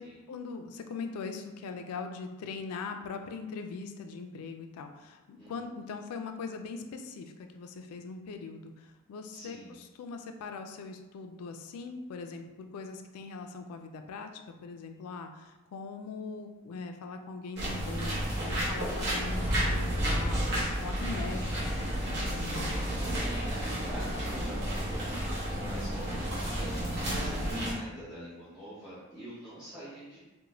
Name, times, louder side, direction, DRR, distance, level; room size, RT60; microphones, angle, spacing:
voice 1, 0.0-22.9 27.1-27.5, left 4 dB, 90° left, 10 dB, 0.3 m, -41 dB
voice 2, 9.3-9.8 18.5-19.1 22.3-30.2, right 1 dB, ahead, -13 dB, 0.8 m, -47 dB
sound 1, 17.6-27.7, equal, 50° right, 0.7 m, -31 dB
2.5 x 2.1 x 3.0 m, 1.1 s
head